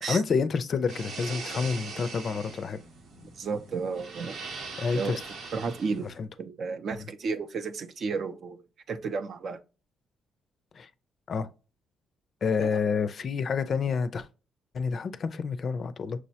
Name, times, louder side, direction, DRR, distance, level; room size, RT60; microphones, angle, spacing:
voice 1, 0.1-2.8 4.8-5.2 6.0-6.3 10.8-10.9 11.3-11.5 12.4-14.3 14.7-16.2, left 5 dB, 50° left, 0.4 m, -28 dB
sound 1, 0.9-6.2, right 4 dB, 75° right, 0.9 m, -41 dB
voice 2, 3.2-4.4 5.0-5.1 5.5-6.1 6.4-8.6 8.9-9.6 12.6-12.8, right 4 dB, 55° right, 0.5 m, -32 dB
6.1 x 2.1 x 2.7 m
cardioid pair, 90°, 0 cm